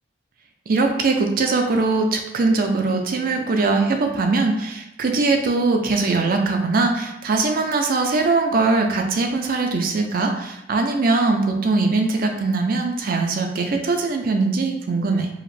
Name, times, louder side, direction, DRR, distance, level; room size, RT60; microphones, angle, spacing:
voice 1, 0.7-15.3, right 3 dB, 50° right, 4 dB, 0.5 m, -21 dB
4.7 x 2.5 x 3.3 m, 0.84 s
head